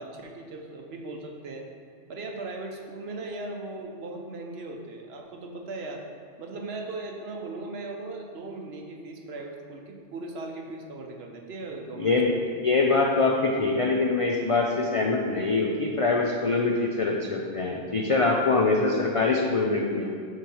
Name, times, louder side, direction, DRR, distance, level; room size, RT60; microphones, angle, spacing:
voice 1, 0.0-1.7 2.1-6.1 6.4-12.4, right 2 dB, 60° right, 2 dB, 0.9 m, -38 dB
voice 2, 12.0-20.2, left 3 dB, 60° left, 0 dB, 0.3 m, -24 dB
7.4 x 3.2 x 5.4 m, 2.3 s
omnidirectional pair, 1.3 m